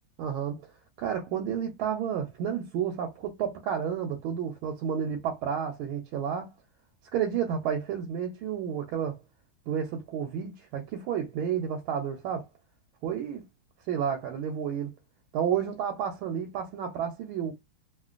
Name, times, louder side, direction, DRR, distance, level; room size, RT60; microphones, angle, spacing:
voice 1, 0.2-0.7 1.0-6.5 7.1-9.2 9.7-12.5 13.0-13.4 13.9-14.9 15.3-17.5, right 8 dB, 85° right, 1.4 m, -31 dB
3.7 x 2.1 x 2.4 m
omnidirectional pair, 2.2 m